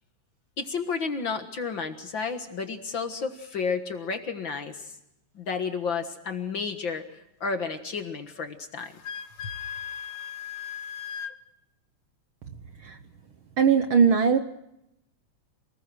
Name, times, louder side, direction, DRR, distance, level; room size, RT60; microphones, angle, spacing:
voice 1, 0.6-5.0 5.4-8.9, left 5 dB, 50° left, 7 dB, 1.9 m, -32 dB
Wind instrument woodwind instrument, 8.8-11.4, left 8 dB, 80° left, 2.4 m, -37 dB
voice 2, 13.6-14.4, right 6 dB, 60° right, 8 dB, 1.4 m, -20 dB
27.5 x 20.0 x 6.2 m, 0.84 s
omnidirectional pair, 3.3 m